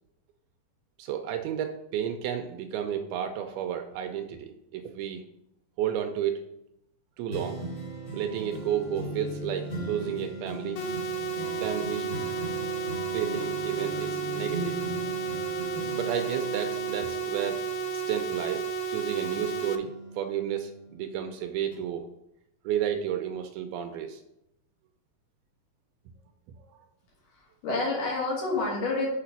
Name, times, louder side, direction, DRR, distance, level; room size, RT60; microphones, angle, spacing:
voice 1, 1.0-5.2 5.8-6.4 7.2-7.6 8.1-10.8 11.6-12.1 13.1-14.8 15.9-17.6 17.9-22.1 22.7-24.2, right 9 dB, 80° right, 5 dB, 2.4 m, -32 dB
sound 1, 7.3-18.9 19.3-21.2 21.7-21.8, right 1 dB, 40° left, 0.9 m, -39 dB
sound 2, 10.8-19.8, right 5 dB, 80° left, 2.3 m, -32 dB
voice 2, 27.3-29.1, left 3 dB, 60° left, -3 dB, 3.1 m, -29 dB
6.6 x 4.9 x 5.8 m, 0.84 s
omnidirectional pair, 4.5 m